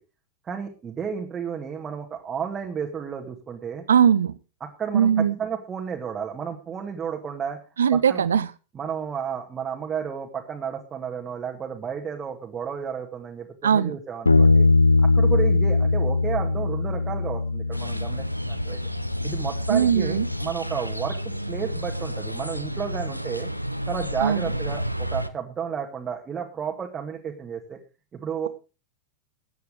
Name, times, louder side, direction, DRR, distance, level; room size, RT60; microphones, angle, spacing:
voice 1, 0.5-3.8 4.6-7.6 7.9-8.3 8.8-14.7 15.1-18.8 19.2-23.5 23.9-27.8 28.1-28.5, right 7 dB, 20° right, 2 dB, 2.1 m, -32 dB
voice 2, 3.9-4.4 4.9-5.3 7.8-8.5 13.6-14.0 19.7-20.3 24.2-24.5, right 8 dB, 65° right, 18 dB, 0.9 m, -20 dB
Bass guitar, 14.3-20.5, left 3 dB, 80° left, 0.5 m, -22 dB
sound 1, 17.7-25.3, equal, 90° right, 0.9 m, -31 dB
14.5 x 9.4 x 5.2 m, 0.33 s
figure-of-eight pair, 90°, 0 cm